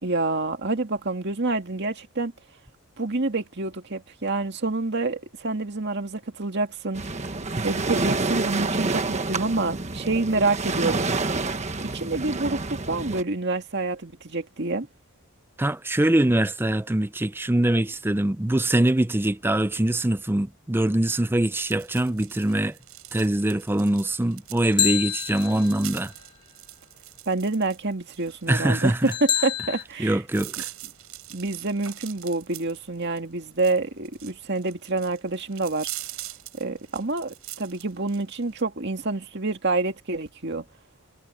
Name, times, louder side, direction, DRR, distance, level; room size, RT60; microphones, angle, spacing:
voice 1, 0.0-2.3 3.0-7.0 7.6-11.0 11.9-14.9 27.3-30.2 31.3-35.9 36.6-40.6, right 3 dB, 55° right, 2.1 m, -27 dB
Waves surf, 6.9-13.2, right 3 dB, 30° right, 1.4 m, -28 dB
voice 2, 15.6-22.8 23.1-26.1 28.5-29.1 30.0-30.7, right 1 dB, 10° right, 0.5 m, -23 dB
sound 1, 21.5-38.6, right 15 dB, 85° right, 5.5 m, -42 dB
sound 2, 24.6-26.0 29.1-29.8, left 9 dB, 20° left, 1.0 m, -27 dB
head